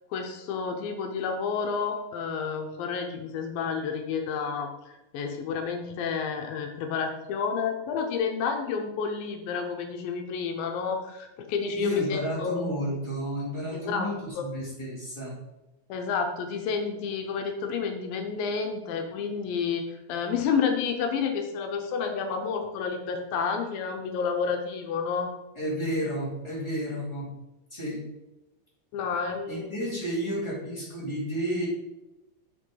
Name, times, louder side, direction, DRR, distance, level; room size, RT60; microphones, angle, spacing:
voice 1, 0.1-12.6 13.7-14.1 14.4-14.5 15.9-25.3 28.9-29.7, left 6 dB, 85° left, 4 dB, 2.5 m, -30 dB
voice 2, 11.7-15.4 25.6-27.3 27.7-28.0 29.5-31.7, equal, 10° left, -6 dB, 1.9 m, -31 dB
7.7 x 6.1 x 3.8 m, 0.97 s
omnidirectional pair, 4.1 m